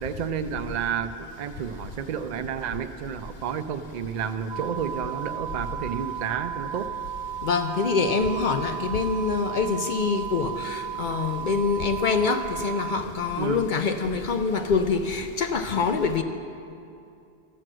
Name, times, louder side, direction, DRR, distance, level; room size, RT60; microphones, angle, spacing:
voice 1, 0.0-6.9 13.4-13.6, right 7 dB, 55° right, 9 dB, 0.5 m, -31 dB
sound 1, 4.5-13.0, right 9 dB, 90° right, 0.9 m, -34 dB
voice 2, 7.4-16.2, left 5 dB, 60° left, 6 dB, 0.6 m, -25 dB
12.0 x 7.7 x 6.1 m, 2.5 s
omnidirectional pair, 1.1 m